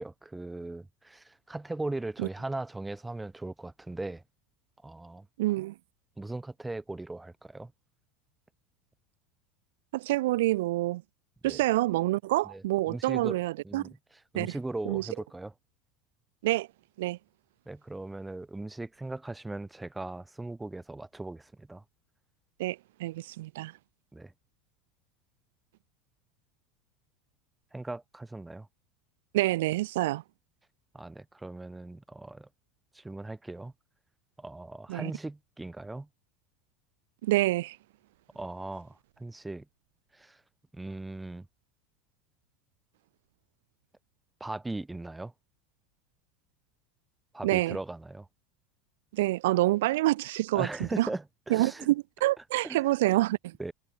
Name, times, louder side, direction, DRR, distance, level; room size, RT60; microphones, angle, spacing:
voice 1, 0.0-4.2 4.8-5.3 6.2-7.7 11.4-11.6 12.4-13.4 13.6-15.5 17.7-21.8 24.1-24.3 27.7-28.7 30.9-32.5 32.9-33.7 34.4-36.1 38.3-39.7 40.1-40.4 40.7-41.5 44.4-45.3 47.3-48.3 50.5-51.9 52.6-52.9 53.6-53.7, right 2 dB, 10° right, 6.4 m, -39 dB
voice 2, 5.4-5.7 9.9-11.0 11.4-13.9 14.3-14.5 14.8-15.1 16.4-16.7 17.0-17.2 22.6-23.7 29.3-30.2 34.9-35.1 37.2-37.8 47.4-47.8 49.1-50.7 51.0-51.1 51.5-53.5, right 17 dB, 65° right, 3.4 m, -27 dB
figure-of-eight pair, 75°, 0 cm